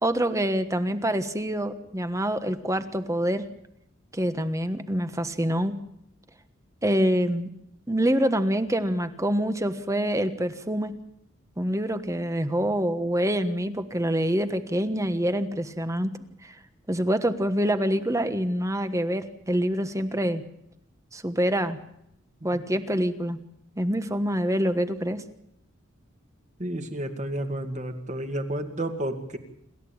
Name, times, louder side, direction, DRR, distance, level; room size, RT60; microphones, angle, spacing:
voice 1, 0.0-3.4 4.1-5.8 6.8-7.5 7.9-10.9 11.6-16.1 16.4-16.5 16.9-20.4 21.1-21.8 22.4-23.4 23.8-25.2, equal, 15° right, 10 dB, 1.3 m, -26 dB
voice 2, 26.6-29.4, right 1 dB, 35° right, 6 dB, 2.3 m, -31 dB
27.5 x 14.0 x 8.8 m, 0.78 s
head